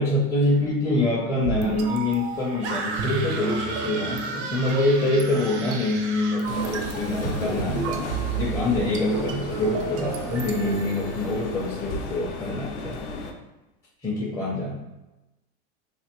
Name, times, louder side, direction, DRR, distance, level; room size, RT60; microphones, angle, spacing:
voice 1, 0.0-13.0 14.0-14.8, left 2 dB, 10° left, -6 dB, 0.5 m, -25 dB
sound 1, 1.4-11.7, right 6 dB, 45° right, 0.4 m, -32 dB
sound 2, 2.6-6.5, right 3 dB, 85° right, 0.7 m, -34 dB
sound 3, 6.4-13.3, left 3 dB, 80° left, 0.7 m, -35 dB
3.4 x 2.3 x 2.9 m, 1.0 s
supercardioid pair, 120°, 33 cm